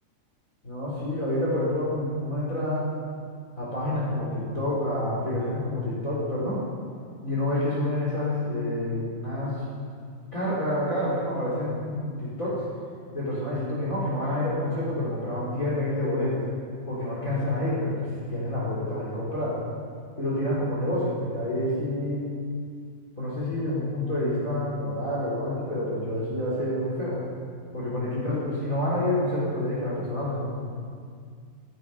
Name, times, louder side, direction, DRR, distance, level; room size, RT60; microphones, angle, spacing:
voice 1, 0.6-2.9 3.6-6.6 7.2-9.6 10.3-12.6 13.1-16.4 16.9-19.6 20.2-22.3 23.2-27.2 27.7-30.5, left 1 dB, 25° left, -7 dB, 4.3 m, -28 dB
15.5 x 15.0 x 5.7 m, 2.1 s
omnidirectional pair, 3.7 m